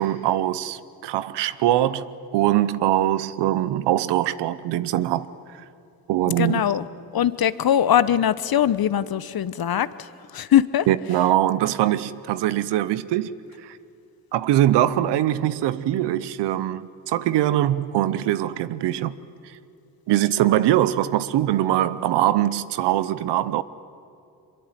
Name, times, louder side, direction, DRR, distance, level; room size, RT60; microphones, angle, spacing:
voice 1, 0.0-5.3 6.1-6.6 10.9-13.3 13.6-13.8 14.3-19.2 20.1-23.6, right 13 dB, 85° right, 0.8 m, -22 dB
voice 2, 6.4-6.8 7.1-10.1 10.3-10.9, left 10 dB, 60° left, 1.0 m, -21 dB
23.5 x 22.0 x 9.2 m
supercardioid pair, 45°, 40 cm